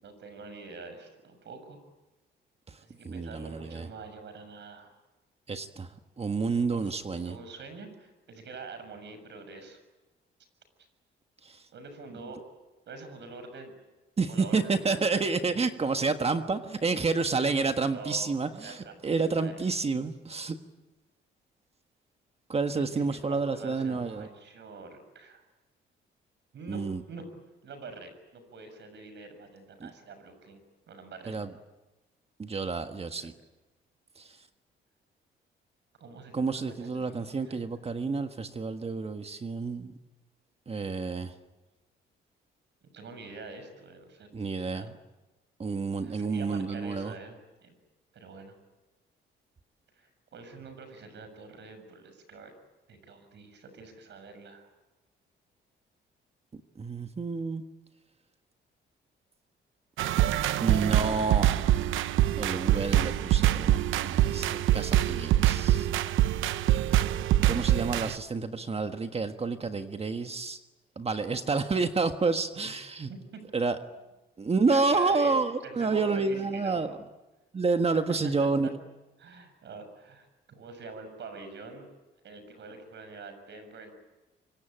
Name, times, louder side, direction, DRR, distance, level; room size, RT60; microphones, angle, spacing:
voice 1, 0.0-1.8 2.8-4.9 6.7-9.8 11.7-12.4 12.9-13.7 14.3-15.2 17.9-18.3 18.6-19.6 22.7-25.4 26.5-27.3 27.6-30.6 30.9-31.4 33.2-33.3 36.0-37.7 42.9-44.8 46.0-47.8 48.1-48.6 49.9-52.5 52.9-54.7 72.6-72.7 73.1-73.4 74.7-76.8 78.4-78.7 79.2-81.9 82.2-83.9, right 4 dB, 65° right, 8 dB, 6.7 m, -45 dB
voice 2, 3.0-3.9 5.5-5.9 6.2-7.4 11.4-11.6 14.2-20.6 22.5-24.3 26.7-27.0 29.8-29.9 31.3-31.5 32.4-33.3 34.2-34.4 36.3-39.9 40.7-41.3 44.3-44.9 45.6-47.1 56.8-57.6 60.6-61.7 62.4-65.9 67.4-70.6 70.9-73.1 73.5-73.8 74.4-77.0 77.5-78.7, right 4 dB, 30° right, 7 dB, 1.5 m, -29 dB
sound 1, 60.0-68.2, right 13 dB, 85° right, 0.9 m, -25 dB
25.0 x 23.5 x 9.2 m, 1.1 s
cardioid pair, 90°, 20 cm